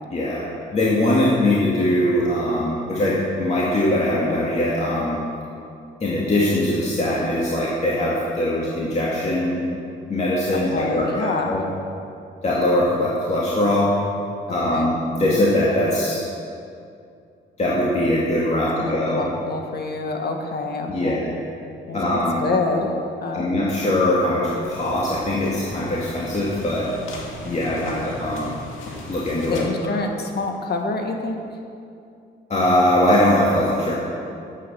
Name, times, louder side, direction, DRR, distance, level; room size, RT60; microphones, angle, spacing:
voice 1, 0.1-5.2 6.0-9.6 10.1-11.7 12.4-14.0 14.5-16.2 17.6-19.3 20.9-21.4 21.9-22.4 23.3-26.9 27.4-28.5 29.1-29.9 32.5-33.9, left 1 dB, 35° left, -6 dB, 2.1 m, -21 dB
voice 2, 10.5-11.6 14.7-14.9 18.8-21.2 21.9-22.9 23.2-23.6 27.4-28.1 29.5-31.4, left 3 dB, 55° left, 3 dB, 1.6 m, -27 dB
sound 1, 24.6-29.6, left 2 dB, 85° left, 2.0 m, -37 dB
10.5 x 8.5 x 6.9 m, 2.5 s
cardioid pair, 90°, 20 cm